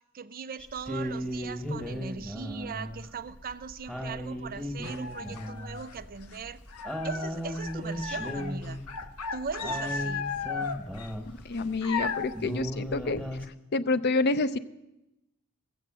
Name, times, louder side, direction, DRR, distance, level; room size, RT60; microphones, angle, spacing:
voice 1, 0.0-6.6 7.0-8.8 9.3-10.3, right 5 dB, 40° right, 13 dB, 0.5 m, -39 dB
sound 1, 0.6-11.6 12.0-12.1 12.3-13.5, equal, 5° left, 1.1 m, -36 dB
sound 2, 4.8-6.4 6.7-12.4, left 5 dB, 85° left, 0.8 m, -35 dB
voice 2, 11.5-13.2 13.7-14.6, left 3 dB, 50° left, 14 dB, 0.5 m, -27 dB
15.5 x 7.7 x 7.4 m, 0.95 s
head